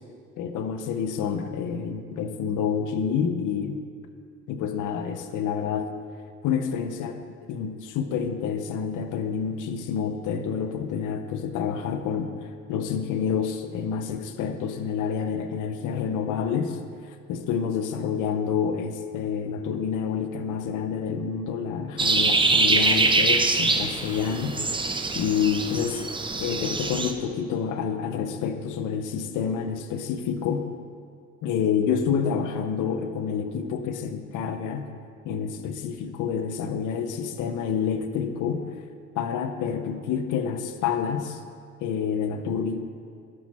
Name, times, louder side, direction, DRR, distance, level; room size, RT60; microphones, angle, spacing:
voice 1, 0.4-3.8 4.5-5.9 6.4-16.8 17.1-24.6 25.1-26.0 26.4-30.7 31.4-34.9 35.2-38.7 39.1-41.4 41.8-42.8, left 7 dB, 85° left, 8 dB, 0.7 m, -28 dB
sound 1, 22.0-27.1, right 3 dB, 15° right, 0.6 m, -24 dB
13.0 x 6.2 x 4.3 m, 2.4 s
cardioid pair, 90°, 30 cm